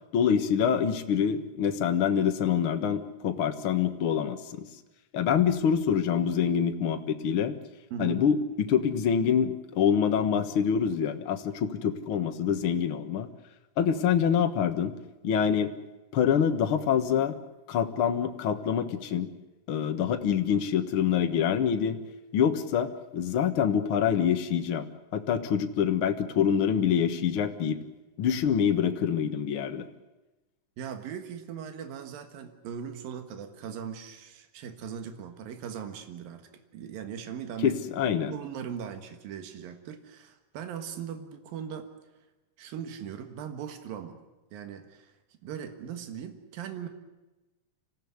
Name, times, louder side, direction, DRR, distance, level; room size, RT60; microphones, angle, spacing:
voice 1, 0.1-4.7 5.1-7.6 8.0-13.3 13.8-14.9 15.2-15.7 16.1-17.3 17.7-19.3 19.7-22.0 22.3-24.9 25.1-27.8 28.2-29.8 37.6-38.3, left 8 dB, 50° left, 7 dB, 1.7 m, -26 dB
voice 2, 7.9-8.2 30.8-37.8 38.3-41.9 42.6-44.2 44.5-45.2 45.4-46.9, right 8 dB, 80° right, 8 dB, 3.4 m, -39 dB
26.0 x 16.0 x 9.6 m, 1.1 s
omnidirectional pair, 4.1 m